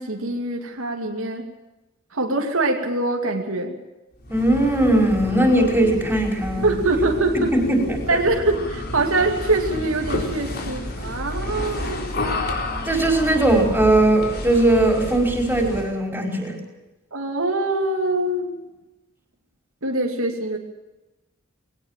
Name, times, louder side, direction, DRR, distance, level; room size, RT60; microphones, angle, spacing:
voice 1, 0.0-1.5 2.1-3.8 6.6-7.5 8.1-12.0 17.1-18.5 19.8-20.6, right 2 dB, 75° right, 2 dB, 2.7 m, -23 dB
sound 1, 4.2-16.0, left 1 dB, 50° left, 4.0 m, -30 dB
voice 2, 4.3-6.7 7.5-8.0 12.8-16.6, right 1 dB, 10° right, 2 dB, 5.2 m, -19 dB
21.0 x 18.5 x 7.5 m, 1.0 s
head